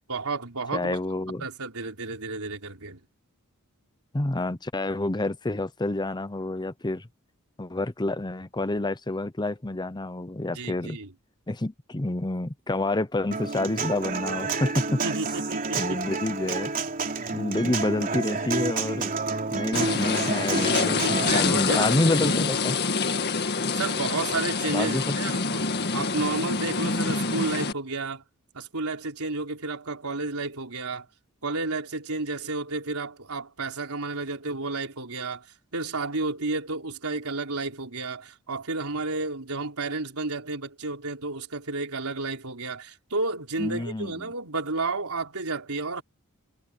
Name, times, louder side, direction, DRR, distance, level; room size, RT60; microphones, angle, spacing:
voice 1, 0.1-1.0 1.3-3.0 10.6-11.1 15.0-16.0 21.3-22.3 23.7-25.7 25.9-28.2 28.5-31.1 31.4-35.5 35.7-46.0, right 3 dB, 80° right, 3.9 m, -31 dB
voice 2, 0.7-1.5 4.1-7.1 7.6-11.0 11.5-15.0 15.8-16.7 17.3-19.1 19.5-22.9 24.7-25.2 43.6-44.1, left 2 dB, 20° left, 0.8 m, -28 dB
Human voice / Acoustic guitar, 13.3-21.3, right 4 dB, 40° right, 3.8 m, -29 dB
sound 1, 19.7-27.7, left 4 dB, 50° left, 1.9 m, -26 dB
head